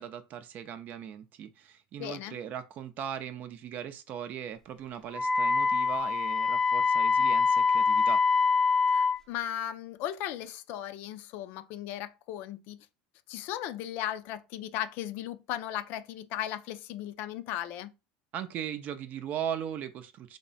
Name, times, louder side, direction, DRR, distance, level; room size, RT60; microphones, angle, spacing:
voice 1, 0.0-8.2 18.3-20.4, right 9 dB, 45° right, 0.5 m, -38 dB
voice 2, 2.0-2.4 8.9-12.9 13.3-17.9, left 12 dB, 60° left, 0.5 m, -37 dB
Wind instrument woodwind instrument, 5.1-9.2, left 5 dB, 10° left, 0.6 m, -25 dB
3.5 x 2.1 x 4.0 m
hypercardioid pair, 95°, 4 cm